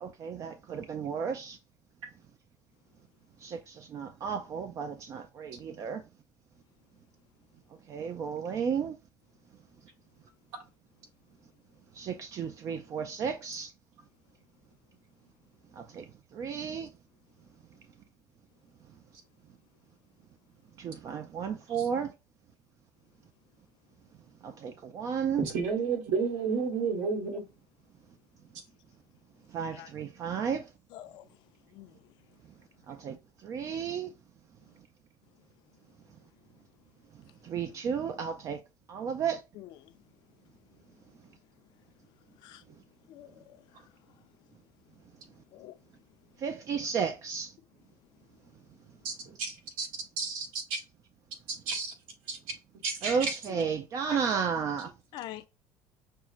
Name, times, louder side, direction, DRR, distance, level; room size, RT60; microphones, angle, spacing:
voice 1, 0.0-1.6 3.4-6.0 7.9-8.9 12.0-13.7 15.8-16.0 16.3-16.9 20.8-22.1 24.4-25.5 29.5-30.7 32.9-33.2 33.4-34.1 37.4-38.6 38.9-39.4 46.4-47.5 53.0-54.9, right 7 dB, 40° right, 0.4 m, -33 dB
voice 2, 25.5-27.4 49.0-49.1 49.4-49.9 50.2-50.8 51.5-51.9 52.3-52.4 52.8-53.3, right 5 dB, 80° right, 1.3 m, -31 dB
voice 3, 30.9-31.2 31.7-31.9 39.6-39.7 42.4-42.6 43.1-43.6 45.5-45.7 55.1-55.5, left 13 dB, 60° left, 0.5 m, -45 dB
5.8 x 2.1 x 2.5 m
cardioid pair, 145°, 9 cm